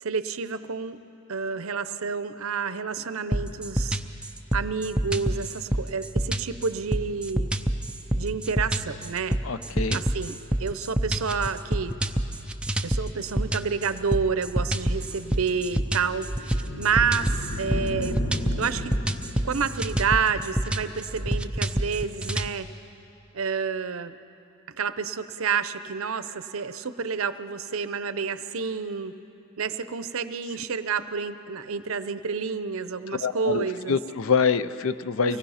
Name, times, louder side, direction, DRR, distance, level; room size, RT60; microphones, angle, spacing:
voice 1, 0.0-1.0 1.3-4.0 4.5-7.5 8.1-9.4 9.9-10.3 10.6-11.9 12.8-18.2 18.6-19.0 19.4-22.7 23.3-24.2 24.7-29.1 29.6-34.0 35.2-35.4, right 5 dB, 70° right, 12 dB, 0.7 m, -29 dB
sound 1, 3.3-22.5, right 1 dB, 5° right, 0.5 m, -28 dB
voice 2, 9.4-10.0 33.2-35.4, left 5 dB, 70° left, 13 dB, 0.5 m, -25 dB
sound 2, 14.8-20.4, left 1 dB, 50° left, 1.1 m, -36 dB
25.0 x 18.5 x 5.7 m, 2.9 s
head